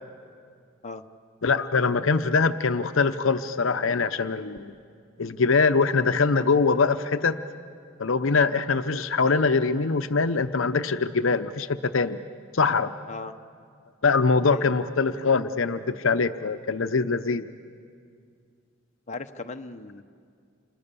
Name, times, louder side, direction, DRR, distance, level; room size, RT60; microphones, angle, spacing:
voice 1, 1.4-4.7 5.2-7.4 8.0-12.2 12.5-12.9 14.0-17.4, left 4 dB, 75° left, 10 dB, 0.8 m, -23 dB
voice 2, 19.1-20.0, left 3 dB, 35° left, 5 dB, 0.9 m, -37 dB
29.0 x 27.5 x 7.0 m, 2.2 s
head